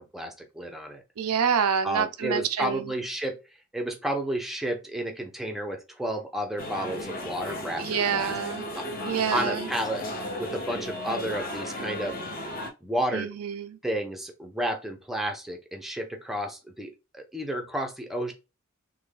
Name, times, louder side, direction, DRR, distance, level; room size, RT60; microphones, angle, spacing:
voice 1, 0.0-1.0 1.8-3.4 3.7-8.3 8.7-10.0 10.4-12.2 12.8-13.3 13.8-18.3, right 1 dB, ahead, 0.5 m, -32 dB
voice 2, 1.2-2.9 7.8-8.6 9.1-9.7 13.1-13.8, right 7 dB, 90° right, 0.5 m, -27 dB
sound 1, 6.6-12.7, left 1 dB, 40° left, 0.7 m, -35 dB
3.4 x 2.2 x 3.3 m
head